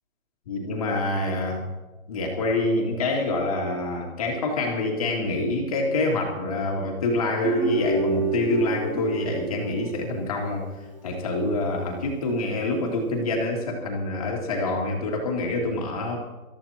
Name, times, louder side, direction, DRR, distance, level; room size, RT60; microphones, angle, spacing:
voice 1, 0.5-1.7 2.1-10.6 11.0-16.2, left 2 dB, 25° left, 0 dB, 2.4 m, -26 dB
Guitar, 7.4-10.7, right 4 dB, 20° right, 1.0 m, -28 dB
26.0 x 14.0 x 2.9 m, 1.2 s
hypercardioid pair, 175°, 43 cm